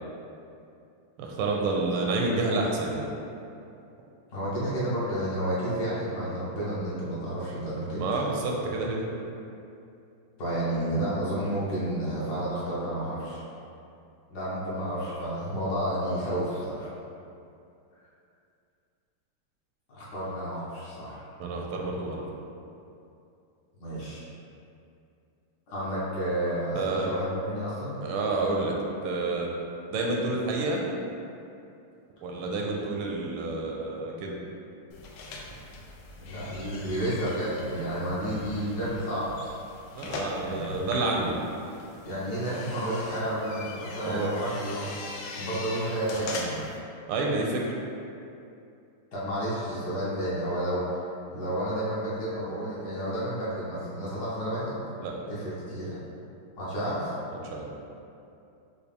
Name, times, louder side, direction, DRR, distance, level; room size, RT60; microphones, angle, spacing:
voice 1, 1.2-3.1 8.0-9.0 21.4-22.2 26.8-27.1 28.0-28.7 29.0-29.5 29.9-30.8 32.2-34.4 40.0-41.4 44.0-44.3 47.1-47.6 55.0-55.1 57.4-57.7, right 2 dB, 80° right, -1 dB, 1.4 m, -29 dB
voice 2, 4.3-8.3 10.4-13.4 14.3-16.9 19.9-21.2 23.8-24.2 25.7-28.0 36.2-39.4 40.4-40.6 42.0-46.6 49.1-51.0 51.3-54.7 55.3-56.0 56.5-57.2, right 1 dB, 55° left, -9 dB, 1.4 m, -31 dB
sound 1, 34.9-46.8, left 2 dB, 85° left, 1.5 m, -41 dB
5.6 x 2.3 x 3.4 m, 2.6 s
omnidirectional pair, 2.3 m